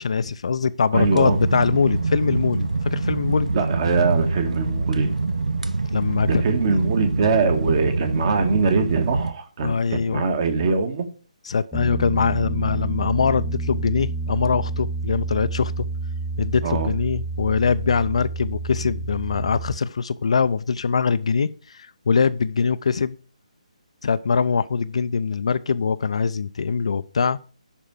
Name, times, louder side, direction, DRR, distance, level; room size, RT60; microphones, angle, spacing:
voice 1, 0.0-3.5 5.9-6.4 9.6-10.2 11.5-15.9 16.4-23.2 24.0-27.4, left 5 dB, 55° left, 0.6 m, -22 dB
voice 2, 0.9-1.4 3.5-5.1 6.2-11.1 16.6-16.9, right 4 dB, 35° right, 1.9 m, -22 dB
sound 1, 0.9-9.3, right 3 dB, 70° right, 0.9 m, -24 dB
Piano, 11.7-19.8, right 3 dB, ahead, 0.6 m, -29 dB
11.5 x 4.5 x 7.7 m
figure-of-eight pair, 145°, 4 cm